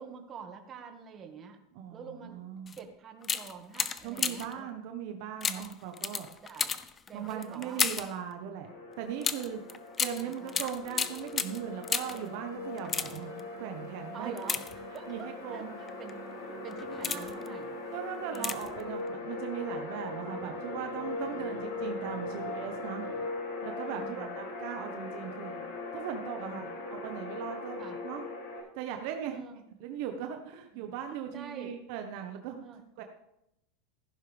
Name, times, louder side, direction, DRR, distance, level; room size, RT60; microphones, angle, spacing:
voice 1, 0.0-1.6 1.9-2.4 2.8-4.7 5.6-5.7 6.4-6.7 7.1-8.0 10.2-10.6 14.1-16.1 16.4-17.8 18.2-18.6 21.4-21.6 22.2-22.6 23.8-24.4 26.4-26.7 27.8-28.0 29.3-29.5 30.7-31.7 32.6-32.8, right 6 dB, 30° right, 4 dB, 2.0 m, -47 dB
voice 2, 1.7-2.8 4.0-6.3 7.1-8.7 9.0-9.6 10.0-13.3 13.6-14.3 15.1-15.8 17.0-17.4 17.9-23.1 23.6-25.6 25.9-28.3 28.7-29.4 29.8-32.6 33.0-33.1, right 9 dB, 65° right, 5 dB, 1.3 m, -39 dB
sound 1, 2.7-2.8 3.2-4.6 5.4-8.2 9.2-12.3 12.8-13.4 14.4-15.2 15.9-16.1 16.7-17.5 18.3-18.8 19.1-19.2, left 6 dB, 25° left, 0.8 m, -33 dB
sound 2, 8.6-28.6, left 3 dB, 70° left, 5.3 m, -40 dB
sound 3, 10.8-23.3, right 7 dB, 90° right, 1.8 m, -52 dB
15.0 x 11.5 x 3.5 m, 0.82 s
supercardioid pair, 120°, 0 cm